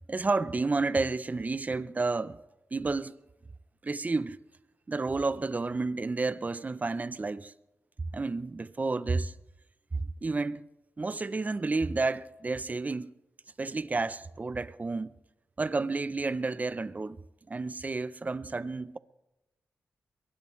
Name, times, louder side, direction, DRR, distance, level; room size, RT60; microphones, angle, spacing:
voice 1, 0.1-2.4 2.7-3.1 3.8-4.4 4.9-7.5 8.1-9.3 9.9-10.6 11.0-13.1 13.6-15.1 15.6-17.2 17.5-19.0, right 3 dB, 30° right, 0.6 m, -31 dB
23.0 x 18.0 x 3.2 m
cardioid pair, 65°, 5 cm